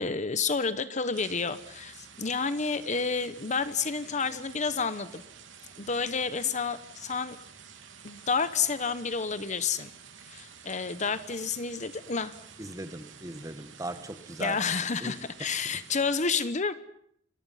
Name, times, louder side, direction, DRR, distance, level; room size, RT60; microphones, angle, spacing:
voice 1, 0.0-5.2 5.8-7.4 8.0-9.9 10.3-12.3 14.4-16.7, left 5 dB, 40° left, 13 dB, 1.1 m, -30 dB
sound 1, 1.1-16.2, right 7 dB, 85° right, 3.3 m, -50 dB
voice 2, 12.6-14.6 15.0-15.1 15.7-15.8, right 1 dB, 20° right, 10 dB, 1.6 m, -38 dB
29.5 x 23.5 x 5.8 m, 0.68 s
head